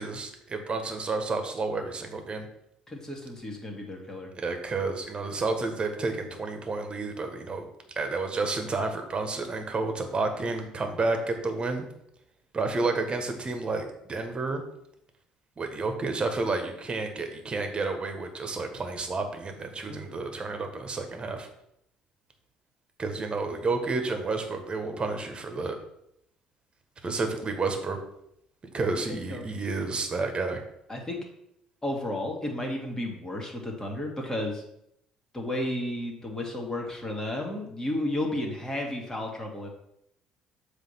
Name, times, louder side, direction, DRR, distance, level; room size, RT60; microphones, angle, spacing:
voice 1, 0.0-2.5 4.3-7.7 7.9-11.8 12.5-14.6 15.6-21.5 23.0-25.7 27.0-28.0 28.7-30.6, right 3 dB, 30° right, 5 dB, 1.5 m, -30 dB
voice 2, 2.9-4.3 19.9-20.2 29.1-29.6 30.9-31.2 31.8-34.6 35.3-39.7, left 1 dB, 20° left, 0 dB, 2.2 m, -33 dB
7.3 x 3.5 x 5.7 m, 0.77 s
hypercardioid pair, 55°, 3 cm